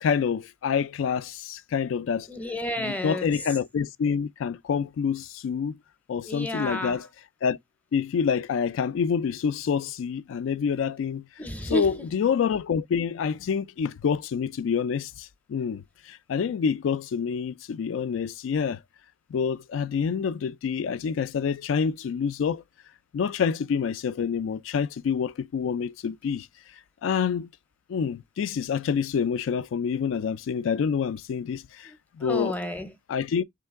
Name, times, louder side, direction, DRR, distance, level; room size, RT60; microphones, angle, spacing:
voice 1, 0.0-2.3 2.8-5.8 6.1-7.1 7.4-7.6 7.9-11.3 11.7-18.8 19.3-22.6 23.1-26.5 27.0-27.5 27.9-32.5 33.1-33.4, left 6 dB, 85° left, 0.3 m, -27 dB
voice 2, 2.3-3.4 6.2-7.0 11.4-12.1 31.9-32.9, equal, 10° left, 0.6 m, -32 dB
3.6 x 3.2 x 3.4 m
head